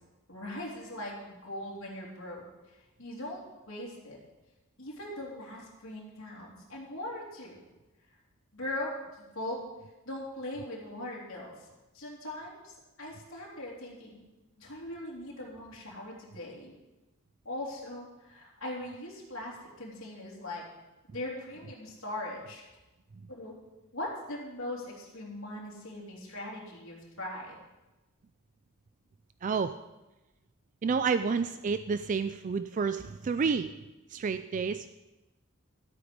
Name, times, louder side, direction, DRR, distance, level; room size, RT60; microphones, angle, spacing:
voice 1, 0.3-2.4 3.0-4.2 4.8-7.6 8.5-9.6 10.0-11.5 11.9-14.2 14.6-16.7 17.4-20.6 21.1-22.6 23.3-23.5 23.9-27.5, left 1 dB, 65° left, -5 dB, 3.2 m, -40 dB
voice 2, 29.4-29.8 30.8-33.7 34.1-34.9, right 5 dB, 35° right, 11 dB, 0.3 m, -30 dB
12.5 x 8.7 x 5.2 m, 1.0 s
head